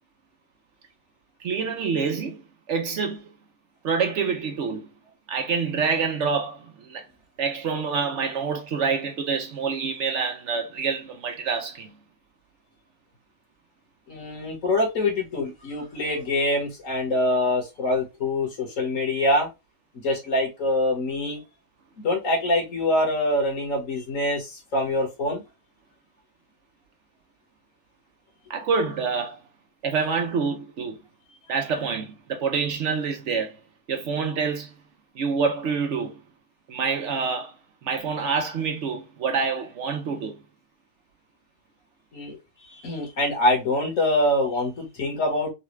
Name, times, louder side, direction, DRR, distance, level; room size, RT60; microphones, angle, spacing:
voice 1, 1.4-2.4 2.7-3.3 3.8-4.9 5.3-7.1 7.4-11.9 28.5-29.4 29.8-31.0 31.5-33.6 33.9-34.7 35.2-36.2 36.7-37.5 37.8-40.4, right 5 dB, 65° right, 0.8 m, -27 dB
voice 2, 14.1-19.5 20.0-21.4 22.0-25.4 42.1-45.5, left 1 dB, 65° left, 1.7 m, -25 dB
4.0 x 2.3 x 3.0 m
omnidirectional pair, 1.5 m